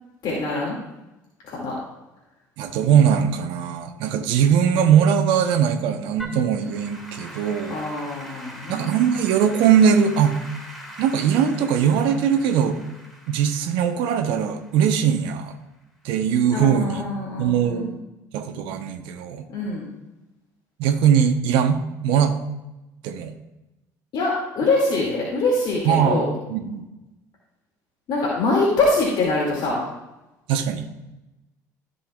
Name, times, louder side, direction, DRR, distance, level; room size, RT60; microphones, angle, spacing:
voice 1, 0.2-0.8 1.4-1.8 7.7-8.9 16.5-17.9 19.5-19.9 24.1-26.3 28.1-29.8, left 2 dB, 55° left, -4 dB, 2.4 m, -24 dB
voice 2, 2.6-7.8 8.7-10.4 11.0-12.8 13.3-15.5 16.0-17.0 17.4-18.0 18.3-19.4 20.8-22.3 23.0-23.3 25.9-26.2 26.5-26.9 30.5-30.9, right 8 dB, 65° right, 6 dB, 0.9 m, -20 dB
Applause / Keyboard (musical), 6.2-15.5, equal, ahead, 2.4 m, -42 dB
15.0 x 5.5 x 2.4 m, 0.98 s
hypercardioid pair, 60°, 9 cm